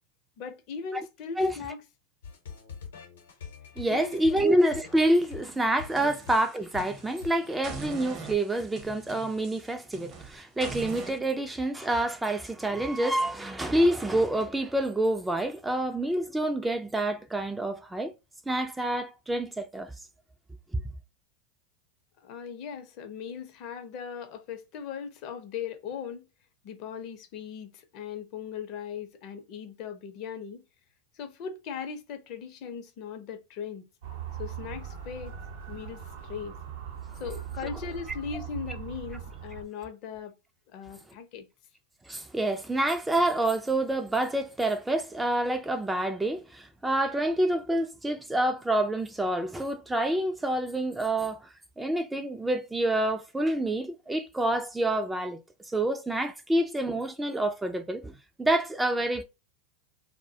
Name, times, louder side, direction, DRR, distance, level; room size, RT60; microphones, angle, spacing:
voice 1, 0.4-1.8 3.9-4.4 22.2-26.3 26.6-30.6 31.1-33.9 34.4-35.4 35.7-36.6 37.2-40.3 40.7-41.5, left 7 dB, 50° left, 0.6 m, -39 dB
sound 1, 2.2-7.7, left 6 dB, 85° left, 0.8 m, -45 dB
voice 2, 3.8-18.1 18.5-19.9 42.1-51.5 51.8-55.4 55.7-59.2, right 1 dB, 10° right, 0.3 m, -27 dB
sound 2, 5.8-7.2 7.6-11.2, right 3 dB, 40° right, 0.7 m, -42 dB
Motor vehicle (road) / Siren, 34.0-39.6, right 8 dB, 70° right, 0.7 m, -40 dB
2.2 x 2.1 x 2.6 m
hypercardioid pair, 105°, 0 cm